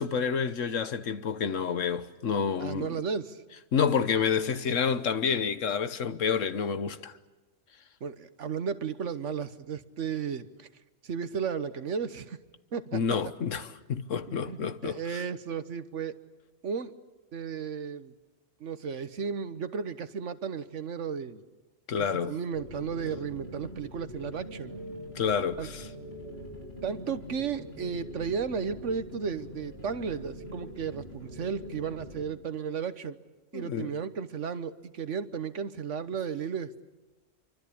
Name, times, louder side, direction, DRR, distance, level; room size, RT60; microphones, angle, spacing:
voice 1, 0.0-3.0 3.7-7.1 12.9-15.2 21.9-22.3 25.1-25.8 33.5-33.9, left 6 dB, 80° left, 1.5 m, -29 dB
voice 2, 2.6-3.4 8.0-10.7 11.0-12.4 12.7-13.2 14.3-16.2 16.6-16.9 17.3-18.1 18.6-21.4 22.0-24.7 25.6-25.7 26.8-33.2 33.5-36.8, right 6 dB, 70° right, 1.4 m, -34 dB
sound 1, 22.5-32.2, equal, 55° left, 7.7 m, -43 dB
27.5 x 24.5 x 8.6 m
omnidirectional pair, 1.3 m